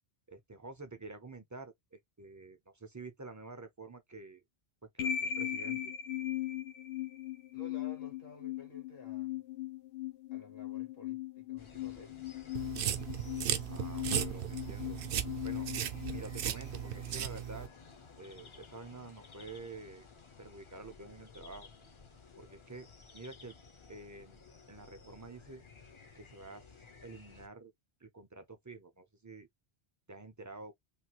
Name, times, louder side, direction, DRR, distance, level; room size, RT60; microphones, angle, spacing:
voice 1, 0.3-4.4 4.9-5.9 13.7-15.0 15.4-15.7 16.1-17.7 18.2-20.1 20.4-21.7 22.4-22.9 23.1-23.6 23.9-24.4 24.7-25.6 26.2-27.7 28.0-29.5 30.1-30.7, right 3 dB, 25° right, 0.4 m, -49 dB
sound 1, 5.0-17.0, left 11 dB, 80° left, 0.8 m, -39 dB
voice 2, 7.5-9.4 10.3-12.3 12.9-13.2, left 4 dB, 65° left, 1.3 m, -53 dB
sound 2, 11.6-27.5, left 5 dB, 35° left, 0.5 m, -55 dB
sound 3, 12.5-17.7, right 10 dB, 65° right, 0.7 m, -36 dB
3.2 x 2.3 x 2.8 m
omnidirectional pair, 1.1 m